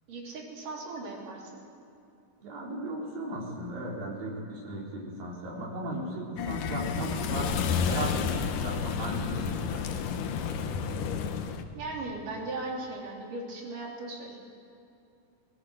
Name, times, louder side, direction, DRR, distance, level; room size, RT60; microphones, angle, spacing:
voice 1, 0.1-1.6 11.7-14.4, right 2 dB, 70° right, -1 dB, 4.8 m, -38 dB
voice 2, 2.4-9.9, right 1 dB, 85° right, -3 dB, 5.7 m, -36 dB
sound 1, 6.4-11.6, left 6 dB, 75° left, 2.6 m, -31 dB
21.0 x 19.0 x 7.8 m, 2.7 s
omnidirectional pair, 3.9 m